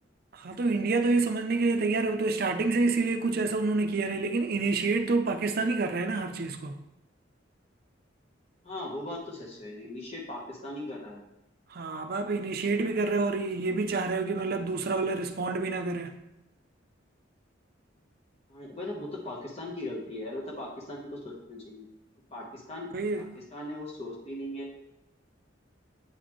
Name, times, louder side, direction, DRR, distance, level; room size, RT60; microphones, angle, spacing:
voice 1, 0.3-6.8 11.7-16.1 22.9-23.3, right 3 dB, 50° right, 0.6 m, -28 dB
voice 2, 8.6-11.2 18.5-21.8 22.3-22.9 23.2-24.7, left 1 dB, 35° left, 1.2 m, -39 dB
8.5 x 4.1 x 3.1 m
head